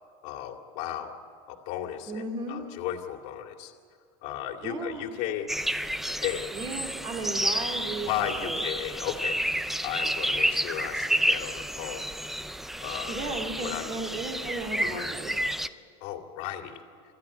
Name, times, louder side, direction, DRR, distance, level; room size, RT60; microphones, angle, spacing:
voice 1, 0.2-1.2 1.5-3.7 4.2-5.5 6.2-6.5 8.0-9.4 9.8-12.0 12.8-13.9 14.8-15.1 16.0-16.8, left 11 dB, 60° left, 5 dB, 2.2 m, -35 dB
voice 2, 2.1-2.7 4.6-5.1 6.5-8.6 13.1-15.4, right 3 dB, 35° right, 2 dB, 2.5 m, -35 dB
sound 1, 5.5-15.7, equal, ahead, 0.5 m, -30 dB
27.0 x 13.0 x 9.7 m, 2.2 s
supercardioid pair, 135°, 14 cm